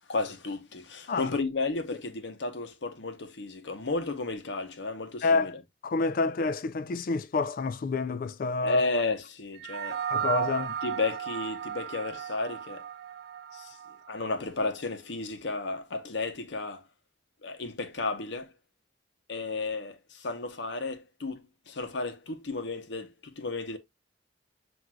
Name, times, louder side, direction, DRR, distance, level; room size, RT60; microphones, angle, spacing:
voice 1, 0.1-5.6 8.6-10.0 10.8-12.9 13.5-13.8 14.1-16.8 17.4-18.5 19.3-23.8, left 3 dB, 85° left, 0.8 m, -33 dB
voice 2, 5.2-5.5 5.8-8.8 10.1-10.7, left 3 dB, 50° left, 0.4 m, -28 dB
sound 1, 9.6-14.2, right 8 dB, 60° right, 0.3 m, -35 dB
7.4 x 2.6 x 2.2 m
head